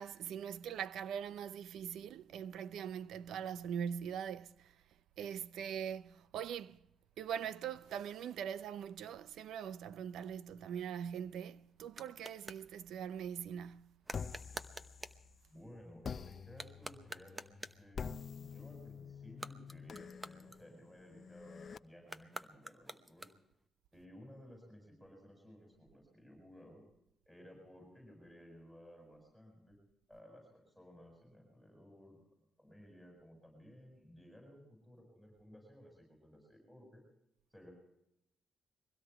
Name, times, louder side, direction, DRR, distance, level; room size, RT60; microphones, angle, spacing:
voice 1, 0.0-4.7 5.2-6.8 7.2-13.9, right 8 dB, 80° right, 0.6 m, -42 dB
sound 1, 11.3-12.7 14.0-15.3 16.5-17.9 19.2-21.1 22.0-23.6, right 2 dB, 15° right, 0.9 m, -49 dB
sound 2, 14.1-15.5 16.0-21.8, left 6 dB, 45° left, 0.6 m, -47 dB
voice 2, 15.5-18.1 18.3-23.3 23.9-26.8 27.3-29.8 30.1-32.2 32.6-37.0 37.5-37.7, equal, ahead, 7.3 m, -57 dB
23.0 x 17.0 x 3.5 m
cardioid pair, 90°, 0 cm